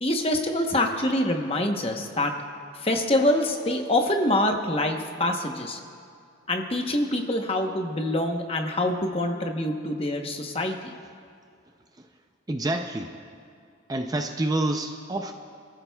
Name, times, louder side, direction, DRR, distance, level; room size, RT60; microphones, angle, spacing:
voice 1, 0.0-2.3 2.8-5.8 6.5-10.8, left 1 dB, 30° left, 3 dB, 0.9 m, -25 dB
voice 2, 12.5-13.1 13.9-15.3, right 2 dB, 20° right, 5 dB, 0.4 m, -27 dB
25.0 x 14.0 x 2.3 m, 2.3 s
head